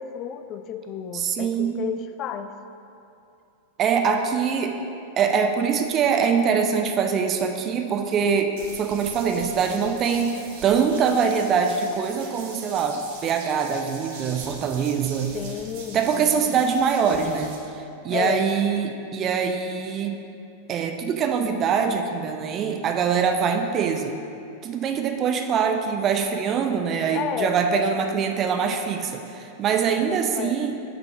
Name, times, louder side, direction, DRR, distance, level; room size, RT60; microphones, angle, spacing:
voice 1, 0.0-2.5 15.3-16.6 18.1-18.5 27.1-27.6 29.9-30.5, left 8 dB, 35° left, 9 dB, 0.3 m, -32 dB
voice 2, 1.1-1.8 3.8-4.8 5.2-8.5 8.8-15.3 15.9-17.5 18.0-20.2 20.7-24.1 24.6-30.8, right 6 dB, 30° right, 5 dB, 0.5 m, -23 dB
Electricity crackling, 8.6-17.5, right 4 dB, 50° right, 1.0 m, -42 dB
6.1 x 5.1 x 4.8 m, 2.6 s
figure-of-eight pair, 90°, 0 cm